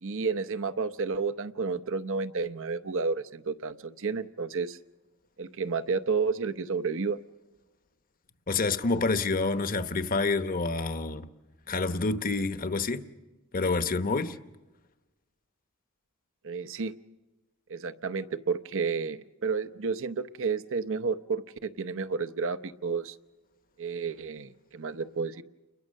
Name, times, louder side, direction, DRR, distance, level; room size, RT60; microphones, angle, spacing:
voice 1, 0.0-4.8 5.4-7.2 16.4-16.9 17.7-23.1 23.8-25.4, right 5 dB, 65° right, 0.8 m, -31 dB
voice 2, 8.5-11.3 11.7-13.1 13.5-14.4, left 3 dB, 40° left, 1.0 m, -28 dB
29.5 x 22.0 x 6.5 m
head